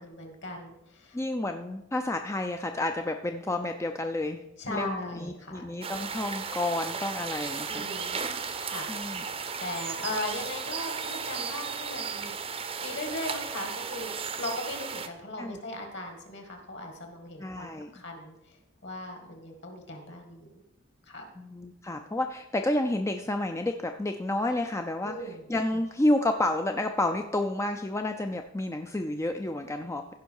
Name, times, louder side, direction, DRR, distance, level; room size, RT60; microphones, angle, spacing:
voice 1, 0.0-1.2 4.6-5.7 7.7-8.2 8.6-8.9 9.6-12.4 12.8-18.6 18.8-20.5 21.0-21.3 25.0-25.4, left 1 dB, 55° left, 4 dB, 2.0 m, -38 dB
voice 2, 1.1-4.4 4.7-7.8 8.9-9.2 15.4-15.6 17.4-17.9 21.4-30.1, left 1 dB, 15° left, 5 dB, 0.4 m, -30 dB
sound 1, 5.8-15.1, right 5 dB, 25° right, 0.6 m, -35 dB
15.5 x 5.4 x 4.7 m, 0.90 s
head